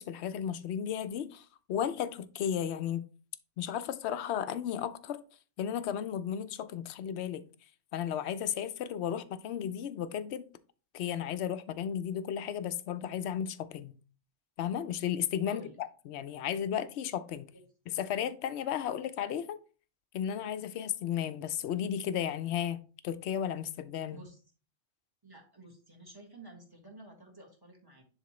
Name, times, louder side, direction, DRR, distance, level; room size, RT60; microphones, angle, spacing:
voice 1, 0.0-3.0 3.6-5.2 5.6-7.4 7.9-10.5 10.9-14.0 14.6-17.5 17.9-19.6 20.1-24.2, left 9 dB, 65° left, 0.8 m, -34 dB
voice 2, 15.4-15.8 17.5-17.6 24.1-24.4 25.2-28.0, right 1 dB, 20° right, 1.4 m, -52 dB
10.5 x 3.6 x 3.1 m
omnidirectional pair, 1.3 m